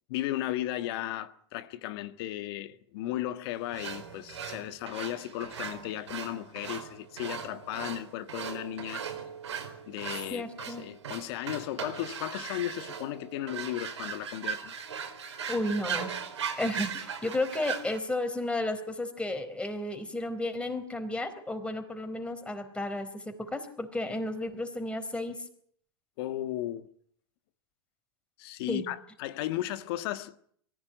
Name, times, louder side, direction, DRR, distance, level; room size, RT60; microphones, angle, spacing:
voice 1, 0.1-9.2 9.9-14.7 26.2-26.9 28.4-30.4, left 14 dB, 60° left, 1.6 m, -35 dB
sound 1, 3.7-18.0, right 7 dB, 90° right, 4.5 m, -39 dB
voice 2, 10.3-10.8 15.5-16.1 16.6-25.4 28.7-28.9, left 1 dB, 10° left, 4.3 m, -33 dB
23.0 x 15.5 x 9.4 m
hypercardioid pair, 110°, 14 cm